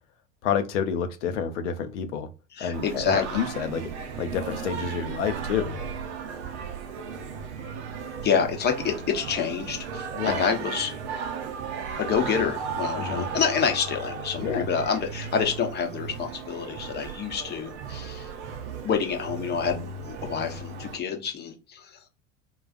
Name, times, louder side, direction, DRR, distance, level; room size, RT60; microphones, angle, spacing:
voice 1, 0.4-2.3 2.6-3.9 4.2-5.7 10.1-10.4 13.0-13.3 14.4-14.7, left 7 dB, 65° left, 8 dB, 0.7 m, -28 dB
voice 2, 2.5-3.4 8.2-10.9 12.0-18.3 18.8-22.0, left 6 dB, 25° left, 4 dB, 0.8 m, -28 dB
Singing, 2.7-21.0, right 6 dB, 60° right, 0.6 m, -35 dB
3.8 x 2.4 x 2.4 m, 0.32 s
figure-of-eight pair, 80°, 39 cm